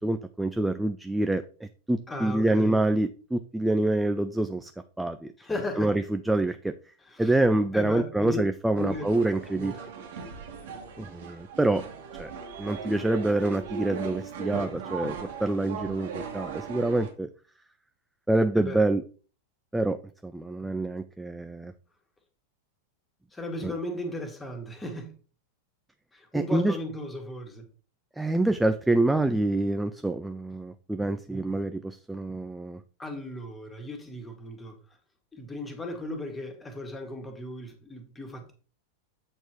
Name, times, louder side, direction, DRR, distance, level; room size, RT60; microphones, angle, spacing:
voice 1, 0.0-4.7 5.0-5.3 5.8-6.7 7.2-9.7 11.0-11.8 12.2-12.3 12.6-17.3 18.3-19.0 19.7-20.0 20.2-21.7 23.6-23.7 26.3-26.8 28.2-32.8, right 2 dB, 5° right, 9 dB, 0.4 m, -26 dB
voice 2, 2.1-2.8 5.4-5.9 7.0-7.3 7.7-8.4 8.8-9.9 18.6-18.8 23.3-25.1 26.1-27.7 33.0-34.8 35.3-38.5, left 1 dB, 10° left, 5 dB, 1.8 m, -36 dB
sound 1, 8.8-17.1, right 5 dB, 55° right, 1.8 m, -38 dB
8.2 x 4.5 x 4.5 m, 0.39 s
figure-of-eight pair, 90°, 0 cm